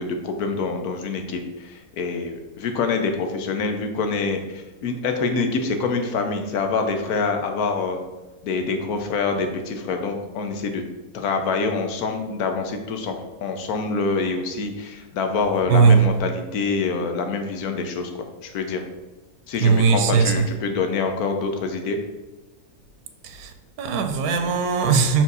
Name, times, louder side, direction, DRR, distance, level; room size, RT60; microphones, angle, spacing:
voice 1, 0.0-8.0 8.4-10.8 11.1-18.8 19.5-22.0, left 4 dB, 90° left, 1.3 m, -26 dB
voice 2, 15.7-16.1 19.6-20.5 23.2-25.2, right 5 dB, 85° right, 1.2 m, -19 dB
5.7 x 4.7 x 4.0 m
omnidirectional pair, 1.5 m